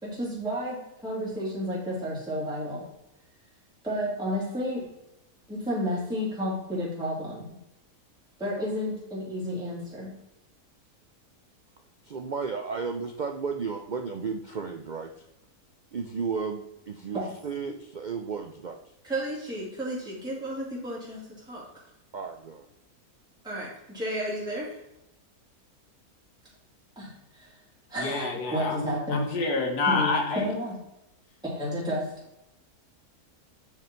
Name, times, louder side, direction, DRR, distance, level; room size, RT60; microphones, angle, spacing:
voice 1, 0.0-2.8 3.8-4.8 5.5-7.5 8.4-10.1 17.1-17.3 19.0-21.7 23.4-24.8 27.0-27.6 27.9-29.3 29.9-30.8 31.4-32.1, equal, 5° right, -7 dB, 2.9 m, -32 dB
voice 2, 12.0-15.2 15.9-18.8 22.1-22.6, right 5 dB, 70° right, 4 dB, 0.4 m, -33 dB
voice 3, 28.0-30.5, left 3 dB, 90° left, 3 dB, 1.8 m, -28 dB
6.9 x 6.2 x 4.4 m, 0.86 s
omnidirectional pair, 1.6 m